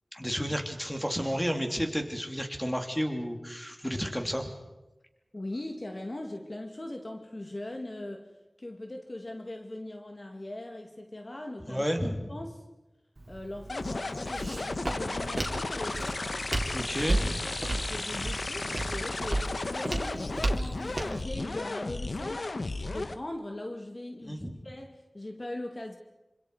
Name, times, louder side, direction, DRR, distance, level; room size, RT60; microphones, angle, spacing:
voice 1, 0.1-4.5 11.6-12.3 16.7-17.5 24.2-24.6, equal, 5° left, 4 dB, 3.3 m, -32 dB
voice 2, 5.3-8.3 8.6-11.9 12.3-12.6 13.3-16.4 16.7-22.5 22.8-26.0, left 1 dB, 40° left, 3 dB, 2.2 m, -40 dB
Walk footsteps, 13.2-21.2, right 1 dB, 50° right, 3.8 m, -34 dB
sound 1, 13.7-23.2, left 2 dB, 70° left, 1.0 m, -34 dB
26.5 x 26.5 x 5.0 m, 1.0 s
wide cardioid pair, 65°, 0 cm